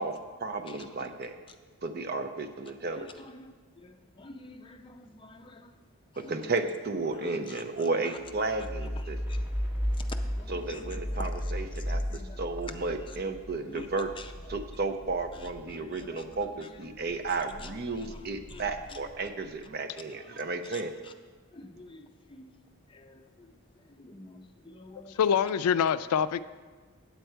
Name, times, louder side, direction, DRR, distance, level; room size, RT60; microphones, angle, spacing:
voice 1, 0.0-1.4 1.8-3.1 6.3-9.2 10.5-14.1 14.5-20.9, right 3 dB, 45° right, 7 dB, 0.6 m, -33 dB
voice 2, 3.3-5.7 6.2-6.3 7.5-7.6 9.3-9.4 10.1-10.8 11.9-12.4 13.7-13.9 15.8-16.2 18.0-18.6 20.7-20.8 21.5-22.5 22.9-23.5 24.0-25.2, left 2 dB, 20° left, 6 dB, 0.4 m, -48 dB
sound 1, 8.2-16.5 16.9-19.5, equal, 10° right, 1.0 m, -36 dB
voice 3, 25.2-26.4, left 8 dB, 90° left, 15 dB, 0.3 m, -25 dB
8.2 x 7.9 x 4.5 m, 1.4 s
head